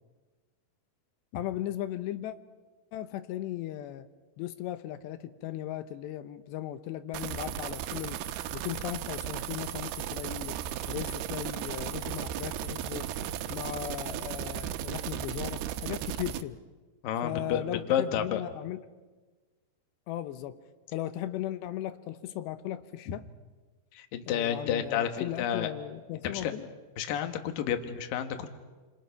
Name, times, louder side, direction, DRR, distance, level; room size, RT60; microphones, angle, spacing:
voice 1, 1.3-2.4 2.9-4.1 4.4-8.2 8.5-10.6 10.9-13.1 13.5-16.6 17.2-18.8 20.1-20.6 20.9-23.3 24.3-26.7 27.2-27.3, left 13 dB, 90° left, 10 dB, 3.2 m, -37 dB
sound 1, 7.1-16.4, right 11 dB, 75° right, 2.8 m, -35 dB
voice 2, 17.0-18.4 23.9-25.7 26.2-26.5 27.0-28.5, left 9 dB, 60° left, 7 dB, 3.0 m, -30 dB
29.0 x 27.0 x 5.8 m, 1.3 s
omnidirectional pair, 4.9 m